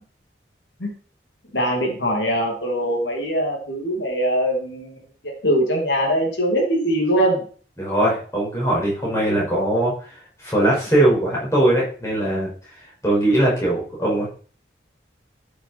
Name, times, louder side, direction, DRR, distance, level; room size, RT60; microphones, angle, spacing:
voice 1, 1.5-7.4, equal, 75° left, 0 dB, 2.8 m, -22 dB
voice 2, 7.8-9.9 10.4-12.5 13.0-14.3, right 1 dB, 15° left, -5 dB, 5.2 m, -20 dB
13.0 x 6.8 x 4.4 m, 0.42 s
head